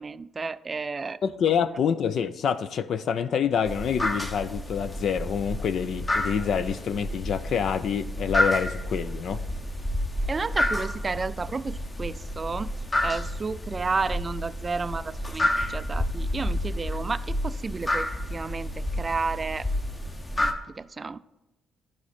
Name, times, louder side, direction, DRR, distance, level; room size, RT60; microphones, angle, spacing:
voice 1, 0.0-1.2 10.3-12.7 13.0-19.7 20.4-21.2, right 4 dB, 30° right, 0.3 m, -32 dB
voice 2, 1.2-9.4, left 7 dB, 65° left, 0.4 m, -27 dB
sound 1, 3.7-20.5, left 1 dB, 20° left, 0.9 m, -30 dB
11.0 x 4.9 x 4.3 m
cardioid pair, 90°, 0 cm